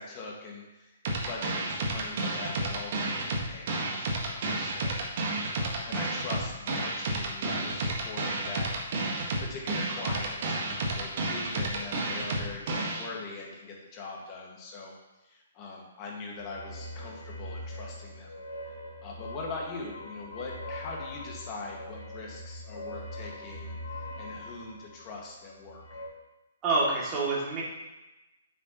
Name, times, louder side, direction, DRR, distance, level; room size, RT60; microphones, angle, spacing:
voice 1, 0.0-8.7 9.4-14.9 15.2-18.4 19.0-23.8 24.2-26.0, left 3 dB, 30° left, -2 dB, 1.8 m, -42 dB
sound 1, 1.0-13.0, right 2 dB, 50° right, 1.5 m, -31 dB
sound 2, 16.3-26.1, left 1 dB, 70° left, 2.7 m, -42 dB
voice 2, 26.6-27.6, right 3 dB, 25° right, -5 dB, 2.6 m, -27 dB
8.2 x 6.3 x 3.0 m, 1.0 s
hypercardioid pair, 135°, 0 cm